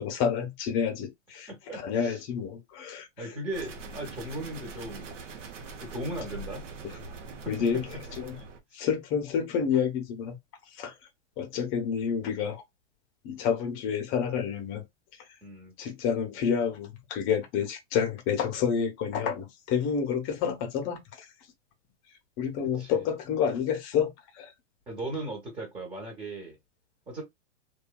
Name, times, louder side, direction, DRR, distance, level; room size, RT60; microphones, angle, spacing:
voice 1, 0.0-3.4 6.8-6.9 7.5-7.9 8.2-8.4 8.7-10.4 10.7-10.9 11.4-12.6 13.2-14.8 15.8-21.3 22.4-24.1 24.3-24.5, left 7 dB, 35° left, 0.8 m, -29 dB
voice 2, 1.5-2.2 3.2-5.2 5.8-7.0 7.4-8.0 8.7-8.9 15.4-15.7 22.8-23.0 24.9-26.6 27.1-27.2, right 1 dB, 15° right, 1.0 m, -38 dB
sound 1, 3.5-8.6, right 3 dB, 85° right, 0.8 m, -43 dB
2.6 x 2.4 x 2.2 m
hypercardioid pair, 120°, 36 cm